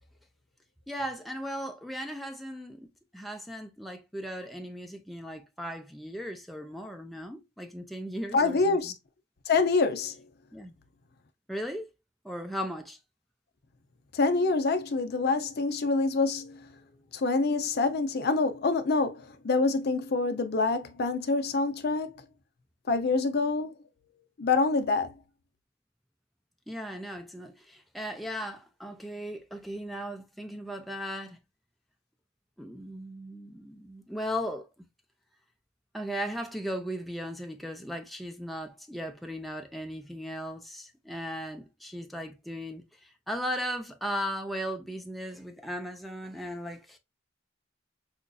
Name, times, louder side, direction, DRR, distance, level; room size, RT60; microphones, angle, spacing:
voice 1, 0.9-2.9 3.1-9.0 10.5-10.7 11.5-11.9 12.2-13.0 26.7-31.4 32.6-34.7 35.9-47.0, equal, ahead, 0.5 m, -37 dB
voice 2, 8.3-8.9 9.5-10.2 14.1-16.6 17.1-22.1 22.9-23.7 24.4-25.1, left 3 dB, 60° left, 0.6 m, -26 dB
5.0 x 2.6 x 2.2 m
head